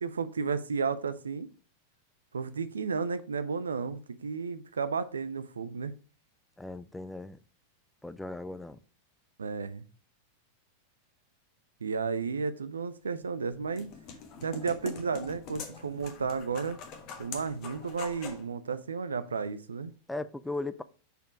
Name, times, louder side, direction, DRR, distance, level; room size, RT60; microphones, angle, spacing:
voice 1, 0.0-1.5 2.3-5.9 9.4-9.8 11.8-13.9 14.4-16.8 17.2-19.9, right 5 dB, 70° right, 0.5 m, -33 dB
voice 2, 6.6-7.4 8.0-8.8 20.1-20.8, left 2 dB, 5° left, 0.3 m, -37 dB
sound 1, 13.2-18.5, left 6 dB, 40° left, 1.2 m, -44 dB
5.3 x 4.4 x 4.7 m
figure-of-eight pair, 90°, 0 cm